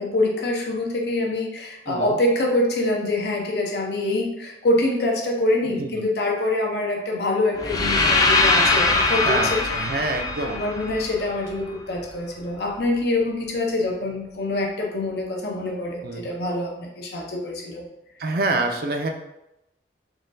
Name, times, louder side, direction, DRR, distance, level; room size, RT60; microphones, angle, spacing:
voice 1, 0.0-10.0 10.4-17.8, left 2 dB, 70° left, 0 dB, 0.7 m, -25 dB
voice 2, 1.9-2.2 5.8-6.0 9.2-10.6 16.0-16.3 18.2-19.1, right 2 dB, 55° right, 4 dB, 0.4 m, -26 dB
sound 1, 7.6-11.6, left 3 dB, 20° left, 0.4 m, -21 dB
3.8 x 3.0 x 2.6 m, 0.88 s
head